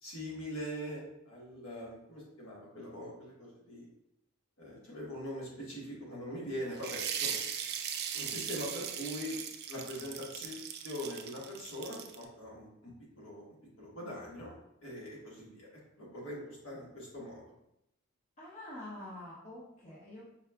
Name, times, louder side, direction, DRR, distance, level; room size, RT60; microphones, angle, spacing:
voice 1, 0.0-3.9 4.6-7.4 8.1-9.4 9.7-15.7 16.0-17.4, equal, 75° left, -5 dB, 1.1 m, -42 dB
sound 1, 6.8-12.2, right 8 dB, 50° right, 0.3 m, -39 dB
voice 2, 18.4-20.2, left 1 dB, 35° left, -7 dB, 0.7 m, -46 dB
4.6 x 2.3 x 2.2 m, 0.81 s
head